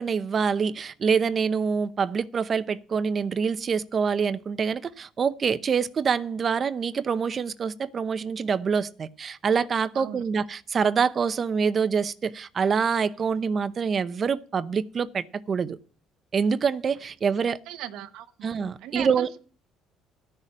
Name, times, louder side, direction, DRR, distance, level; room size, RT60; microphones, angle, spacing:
voice 1, 0.0-15.8 16.3-17.6 18.4-19.3, right 6 dB, 35° right, 0.7 m, -26 dB
voice 2, 17.7-18.5 18.8-19.4, right 12 dB, 75° right, 1.1 m, -37 dB
14.0 x 6.6 x 7.3 m
cardioid pair, 110°, 0 cm